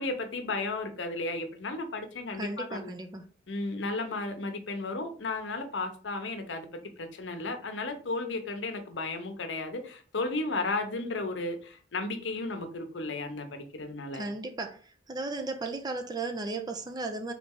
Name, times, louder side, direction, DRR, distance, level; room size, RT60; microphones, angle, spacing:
voice 1, 0.0-2.9 3.5-6.7 7.0-14.3, left 2 dB, 70° left, 0.7 m, -34 dB
voice 2, 2.3-3.2 14.1-14.8 15.1-17.3, right 3 dB, 20° right, 0.5 m, -35 dB
3.7 x 3.1 x 3.6 m
head